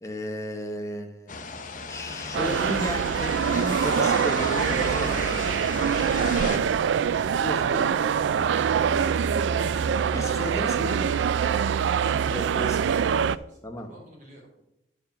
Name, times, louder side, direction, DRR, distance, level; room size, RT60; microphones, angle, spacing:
voice 1, 0.0-1.4 1.9-5.1 7.4-8.0 8.3-9.1 9.5-11.2 12.3-12.9 13.6-13.9, left 1 dB, 15° left, 4 dB, 0.9 m, -34 dB
sound 1, 1.3-6.6, left 3 dB, 45° left, 0.7 m, -34 dB
sound 2, 2.3-13.4, right 7 dB, 75° right, 0.3 m, -24 dB
voice 2, 4.7-5.4 12.2-14.5, right 1 dB, 40° right, -2 dB, 2.8 m, -50 dB
10.5 x 4.7 x 5.7 m, 0.84 s
head